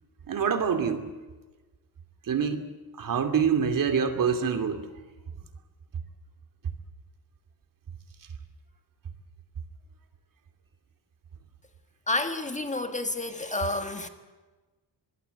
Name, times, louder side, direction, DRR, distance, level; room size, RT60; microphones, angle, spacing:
voice 1, 0.3-1.1 2.3-2.6 3.0-4.8, right 6 dB, 55° right, 2.5 m, -25 dB
voice 2, 12.1-14.1, left 2 dB, 20° left, 1.6 m, -30 dB
24.5 x 21.0 x 8.2 m
wide cardioid pair, 145°, 40 cm